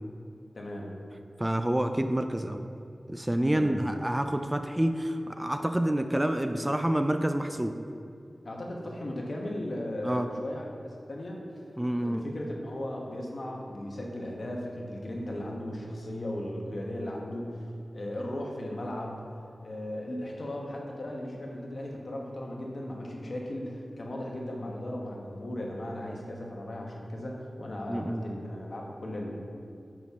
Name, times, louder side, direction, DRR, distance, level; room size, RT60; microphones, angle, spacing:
voice 1, 0.5-0.9 3.5-3.9 8.4-11.6 12.0-17.7 17.9-19.2 19.6-29.3, left 1 dB, 60° left, -1 dB, 1.1 m, -36 dB
voice 2, 1.4-2.6 3.1-7.7 10.0-10.3 11.8-12.2 27.9-28.2, right 1 dB, 15° right, 6 dB, 0.3 m, -28 dB
6.3 x 5.7 x 3.6 m, 2.5 s
wide cardioid pair, 60°, 0 cm